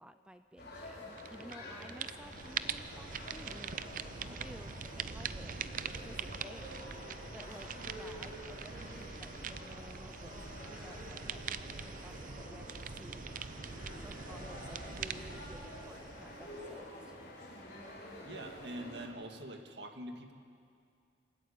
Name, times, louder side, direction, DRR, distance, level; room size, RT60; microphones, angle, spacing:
voice 1, 0.0-3.7 4.3-5.6 6.0-6.9 7.3-11.5 11.8-13.3 14.0-17.2, right 1 dB, 5° right, 9 dB, 0.5 m, -54 dB
sound 1, 0.6-19.1, left 1 dB, 55° left, 5.7 m, -48 dB
sound 2, 1.2-1.6 1.8-16.8, right 6 dB, 45° right, 0.6 m, -43 dB
voice 2, 18.2-20.3, right 1 dB, 70° right, 5 dB, 1.8 m, -45 dB
27.5 x 14.0 x 8.5 m, 2.3 s
head